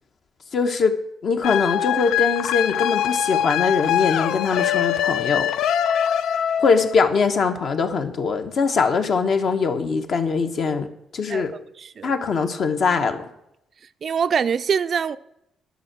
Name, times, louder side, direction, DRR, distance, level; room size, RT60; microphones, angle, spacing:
voice 1, 0.5-0.9 1.2-5.5 6.6-10.9 11.1-11.5 12.0-13.3, left 5 dB, 55° left, 1.2 m, -22 dB
sound 1, 1.4-6.9, left 10 dB, 85° left, 0.4 m, -23 dB
voice 2, 11.8-12.1 14.0-15.2, right 7 dB, 50° right, 0.4 m, -23 dB
11.0 x 6.6 x 6.1 m
cardioid pair, 90°, 0 cm